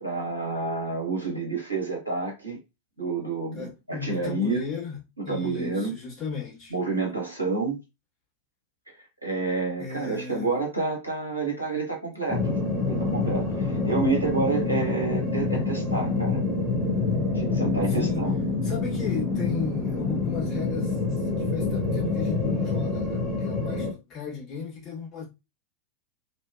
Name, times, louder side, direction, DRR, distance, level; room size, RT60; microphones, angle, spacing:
voice 1, 0.0-2.6 3.0-4.6 5.3-5.9 6.7-7.8 9.2-12.6 12.8-16.4 17.3-18.3, right 3 dB, 80° right, 0.7 m, -29 dB
voice 2, 3.5-6.7 9.8-10.5 17.9-18.3 18.6-25.3, left 5 dB, 30° left, 1.3 m, -35 dB
sound 1, 12.3-23.9, left 3 dB, 5° right, 0.7 m, -27 dB
2.6 x 2.2 x 2.2 m
figure-of-eight pair, 90°, 0 cm